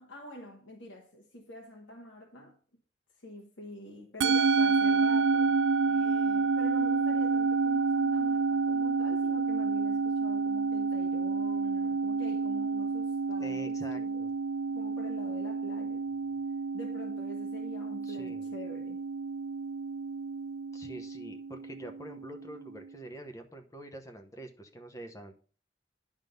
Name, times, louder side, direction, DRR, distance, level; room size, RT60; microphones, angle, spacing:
voice 1, 0.0-2.6 3.2-5.6 5.8-14.2 14.7-16.0 16.7-19.0, left 1 dB, 85° left, 1.4 m, -46 dB
Musical instrument, 4.2-22.7, right 4 dB, 80° right, 0.4 m, -29 dB
voice 2, 13.4-14.3 15.9-16.0 16.3-16.4 18.0-18.5 20.7-25.3, right 1 dB, 15° left, 0.9 m, -46 dB
10.5 x 3.7 x 6.5 m
head